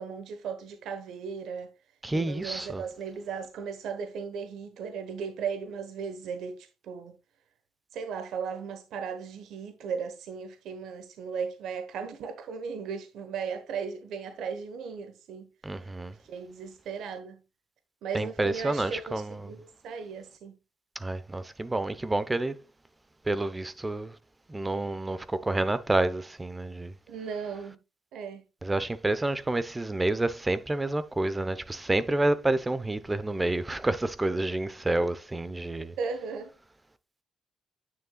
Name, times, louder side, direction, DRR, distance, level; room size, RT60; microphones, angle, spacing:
voice 1, 0.0-1.7 2.1-7.1 7.9-15.5 16.2-17.4 18.0-20.5 27.1-27.8 28.1-28.4 36.0-36.5, right 6 dB, 80° right, 1.1 m, -36 dB
voice 2, 2.0-2.8 15.6-16.1 18.1-19.5 21.0-22.6 23.3-24.1 24.5-26.9 28.6-35.9, right 2 dB, 15° right, 0.8 m, -29 dB
9.5 x 6.6 x 2.3 m
cardioid pair, 90°, 0 cm